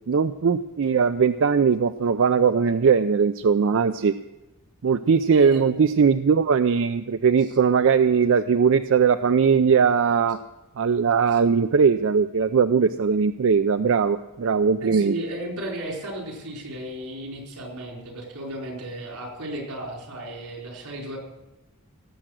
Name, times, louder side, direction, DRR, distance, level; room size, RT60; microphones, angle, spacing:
voice 1, 0.1-4.1 4.8-10.4 10.8-15.1, right 6 dB, 60° right, 10 dB, 0.4 m, -20 dB
voice 2, 5.3-5.8 11.3-11.4 14.8-21.2, right 1 dB, 90° right, -1 dB, 4.3 m, -34 dB
17.5 x 7.8 x 6.4 m, 1.0 s
head